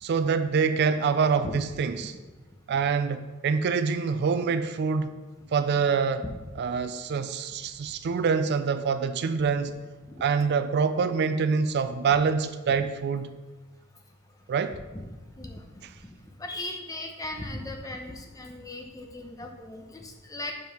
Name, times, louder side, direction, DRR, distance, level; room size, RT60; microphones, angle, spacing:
voice 1, 0.0-2.1 2.7-5.2 5.5-6.3 6.5-9.8 10.2-13.3 14.5-14.8 15.8-15.9, right 5 dB, 55° right, 11 dB, 0.3 m, -25 dB
voice 2, 14.7-15.0 15.4-15.8 16.4-20.5, left 1 dB, 15° left, 2 dB, 0.7 m, -38 dB
5.3 x 4.6 x 5.8 m, 1.2 s
head